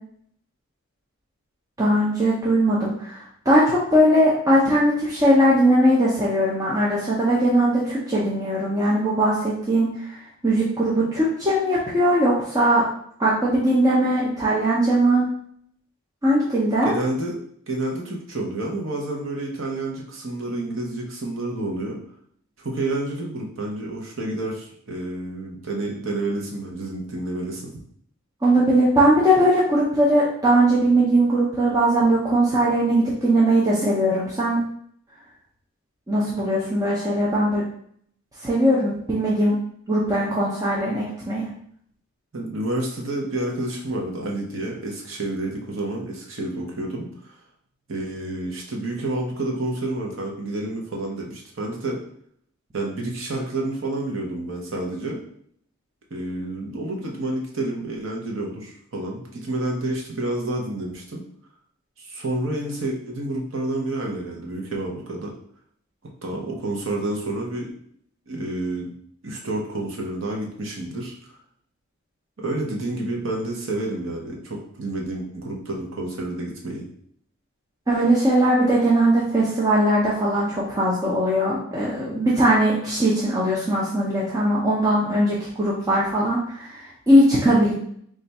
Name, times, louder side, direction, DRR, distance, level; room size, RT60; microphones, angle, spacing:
voice 1, 1.8-12.8 13.2-15.3 16.2-16.9 28.4-34.6 36.1-37.6 38.4-39.6 39.9-41.5 77.9-87.7, right 1 dB, 15° right, -6 dB, 0.6 m, -20 dB
voice 2, 16.8-17.4 17.7-22.0 22.6-27.8 42.3-47.4 47.9-52.0 52.7-55.2 56.1-61.2 62.0-65.3 66.2-67.7 68.3-68.9 69.2-71.4 72.4-76.9, right 2 dB, 60° right, -1 dB, 0.9 m, -29 dB
3.3 x 2.5 x 4.1 m, 0.64 s
head